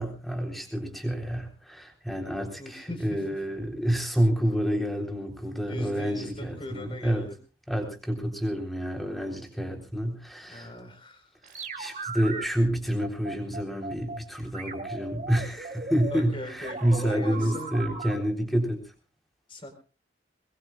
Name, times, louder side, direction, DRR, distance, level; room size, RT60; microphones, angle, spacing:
voice 1, 0.0-7.3 7.7-10.7 11.8-18.8, equal, ahead, 2 dB, 3.7 m, -28 dB
voice 2, 2.6-3.2 5.7-7.4 10.4-11.3 16.1-17.9 19.5-19.7, left 1 dB, 30° left, 6 dB, 4.2 m, -40 dB
sound 1, 11.4-12.5 13.0-14.2 14.5-18.1, right 3 dB, 40° right, 2.9 m, -37 dB
23.0 x 21.0 x 2.4 m, 0.35 s
head